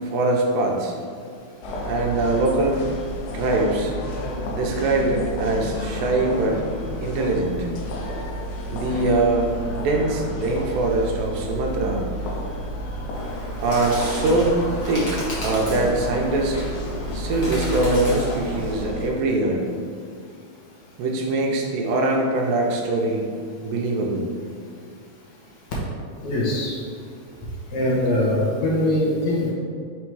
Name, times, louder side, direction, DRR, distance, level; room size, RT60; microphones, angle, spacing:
voice 1, 0.1-0.9 1.9-2.9 3.3-3.9 4.5-6.6 7.0-7.7 8.7-12.1 13.6-14.6 14.9-16.7 17.1-19.7 21.0-23.3 23.6-24.3, right 2 dB, 80° right, 0 dB, 2.4 m, -22 dB
sound 1, 1.6-19.1, equal, 85° left, 2.5 m, -31 dB
Bird, 13.1-18.7, left 1 dB, 50° left, 1.1 m, -34 dB
voice 2, 26.2-26.8 27.7-29.5, left 1 dB, 65° left, -6 dB, 2.2 m, -22 dB
6.1 x 3.6 x 4.6 m, 2.2 s
omnidirectional pair, 4.0 m